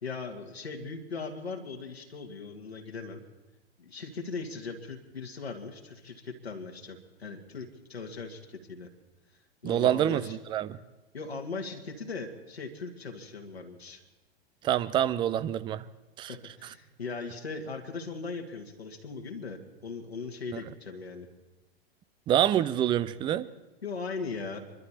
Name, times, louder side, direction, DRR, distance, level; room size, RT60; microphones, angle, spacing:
voice 1, 0.0-3.2 3.8-8.9 9.6-10.4 11.1-14.0 16.3-21.3 23.8-24.7, left 4 dB, 80° left, 1.9 m, -39 dB
voice 2, 9.6-10.8 14.6-15.8 16.2-16.3 20.5-20.6 22.3-23.5, right 11 dB, 15° right, 0.4 m, -26 dB
25.0 x 12.0 x 4.3 m
figure-of-eight pair, 95°, 31 cm